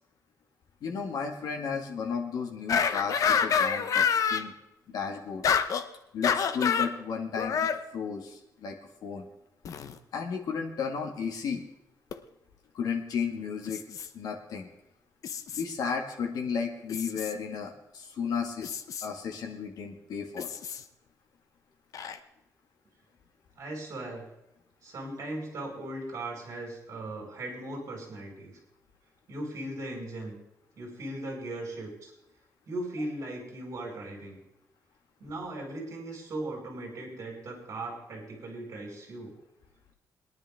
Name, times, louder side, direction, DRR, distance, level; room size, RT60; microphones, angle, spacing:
voice 1, 0.8-4.0 4.3-4.5 4.9-5.4 6.1-8.8 9.0-9.3 10.1-11.6 12.7-13.8 14.1-14.7 15.5-18.8 19.0-20.5, left 6 dB, 80° left, 2 dB, 2.0 m, -33 dB
sound 1, 2.7-4.4 5.4-5.9 6.2-6.9 7.4-7.8 9.7-9.9 12.1-12.2 13.7-14.1 15.2-15.6 16.9-17.3 18.6-19.1 20.4-20.8 21.9-22.2, left 7 dB, 60° left, 0.8 m, -27 dB
voice 2, 23.6-24.3 24.8-28.6 29.3-30.4 30.8-32.1 32.7-34.4 35.2-39.3, right 1 dB, 50° right, -1 dB, 4.8 m, -38 dB
22.0 x 10.5 x 3.6 m, 0.89 s
wide cardioid pair, 170°, 7 cm